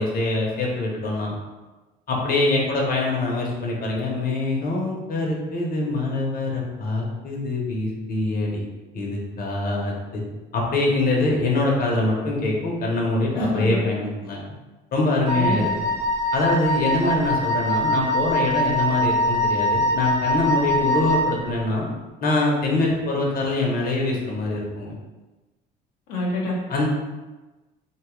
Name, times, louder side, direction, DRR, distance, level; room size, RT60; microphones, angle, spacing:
voice 1, 0.0-1.4 2.1-8.6 8.9-10.2 10.5-14.4 14.9-15.7 16.3-21.9 22.2-24.9 26.7-26.9, left 2 dB, 45° left, -2 dB, 0.8 m, -24 dB
voice 2, 13.4-13.8 15.3-15.7 26.1-26.6, left 1 dB, 90° left, -4 dB, 0.8 m, -26 dB
Wind instrument woodwind instrument, 15.3-21.4, equal, 70° right, 1.0 m, -23 dB
2.8 x 2.3 x 3.0 m, 1.2 s
supercardioid pair, 75°, 21 cm